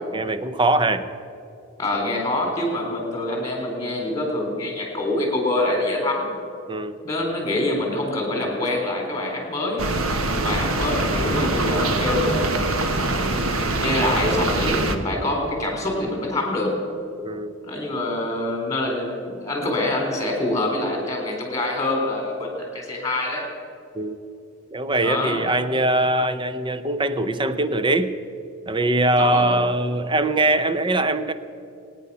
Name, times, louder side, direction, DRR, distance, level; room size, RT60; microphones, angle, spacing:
voice 1, 0.1-1.1 6.7-7.0 10.4-10.6 17.2-17.6 23.9-24.2 24.7-28.1 28.7-31.3, right 2 dB, 25° right, 11 dB, 0.7 m, -22 dB
voice 2, 1.8-6.3 7.0-9.8 10.3-13.1 13.7-16.7 17.6-23.4 25.0-25.4 29.2-29.5, left 2 dB, 15° left, 1 dB, 4.0 m, -25 dB
sound 1, 9.8-15.0, right 2 dB, 85° right, 1.3 m, -23 dB
24.0 x 9.8 x 5.6 m, 2.6 s
head